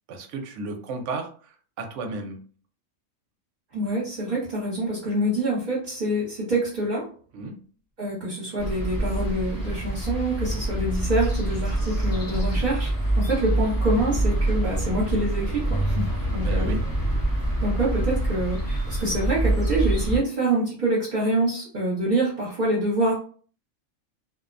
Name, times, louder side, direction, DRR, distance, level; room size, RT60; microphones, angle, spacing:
voice 1, 0.1-2.4 7.3-7.6 16.4-16.8, right 3 dB, 65° right, 4 dB, 0.9 m, -33 dB
voice 2, 3.7-7.1 8.0-16.7 17.6-23.1, right 1 dB, 40° right, -7 dB, 0.9 m, -26 dB
sound 1, 8.6-20.2, right 1 dB, 25° left, 0.5 m, -25 dB
2.5 x 2.1 x 2.5 m, 0.43 s
omnidirectional pair, 1.4 m